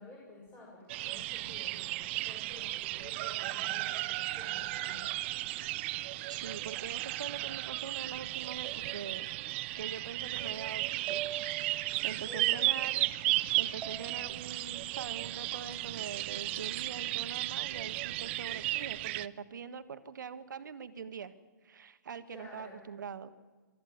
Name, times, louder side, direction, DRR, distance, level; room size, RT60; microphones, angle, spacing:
voice 1, 0.0-5.1 12.2-12.6 22.3-22.9, left 3 dB, 20° left, -4 dB, 7.0 m, -51 dB
sound 1, 0.9-19.3, right 17 dB, 35° right, 0.6 m, -35 dB
voice 2, 5.9-9.3 9.7-11.2 11.6-13.0 13.6-21.3 21.6-23.3, right 6 dB, 65° right, 12 dB, 1.5 m, -43 dB
sound 2, 8.6-9.5 11.1-12.0 13.8-14.4 15.5-15.7, right 10 dB, 20° right, 1.8 m, -45 dB
23.0 x 14.0 x 9.5 m, 1.4 s
figure-of-eight pair, 130°, 11 cm